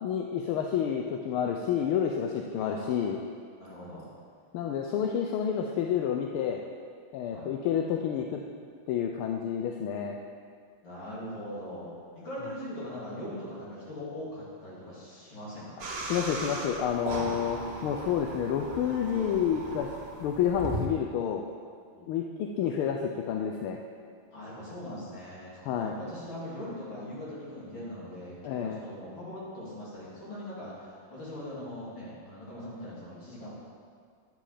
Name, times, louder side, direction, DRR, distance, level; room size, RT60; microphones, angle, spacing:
voice 1, 0.0-3.2 4.5-6.6 7.1-8.3 8.9-10.2 16.1-19.9 20.2-21.5 22.1-23.8 25.6-25.9 28.4-28.8, left 8 dB, 90° left, 2 dB, 1.5 m, -29 dB
voice 2, 2.5-3.0 3.6-4.1 7.3-7.5 10.8-11.9 12.2-15.9 21.9-22.2 24.3-33.5, left 1 dB, 65° left, -8 dB, 3.9 m, -41 dB
sound 1, 15.8-20.9, right 2 dB, 40° right, 0.9 m, -38 dB
11.0 x 7.6 x 5.0 m, 2.1 s
omnidirectional pair, 2.3 m